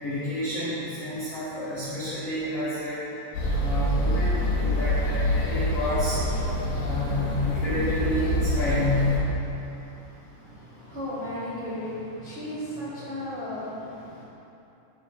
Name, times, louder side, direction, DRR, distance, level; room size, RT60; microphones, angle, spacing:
voice 1, 0.0-3.0 3.6-6.2 6.7-9.1, left 1 dB, 85° left, -11 dB, 1.3 m, -29 dB
sound 1, 3.3-9.2, left 1 dB, 65° left, 2.6 m, -26 dB
voice 2, 10.4-14.2, left 1 dB, 75° right, -13 dB, 1.2 m, -35 dB
10.5 x 5.2 x 3.2 m, 2.9 s
omnidirectional pair, 5.2 m